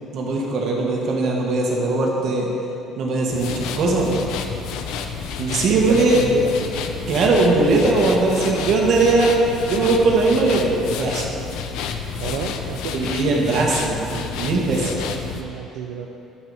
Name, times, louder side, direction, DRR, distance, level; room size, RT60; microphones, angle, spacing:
voice 1, 0.1-2.5 3.0-4.1 5.4-6.4 7.1-9.4 9.7-11.3 12.9-14.9, right 3 dB, 50° right, -2 dB, 1.5 m, -19 dB
voice 2, 2.2-2.6 5.7-6.9 12.2-13.1 14.9-16.1, right 6 dB, 85° right, 2 dB, 0.5 m, -31 dB
sound 1, 3.3-15.4, left 6 dB, 80° left, 0.5 m, -30 dB
12.0 x 4.6 x 4.2 m, 2.9 s
cardioid pair, 130°, 0 cm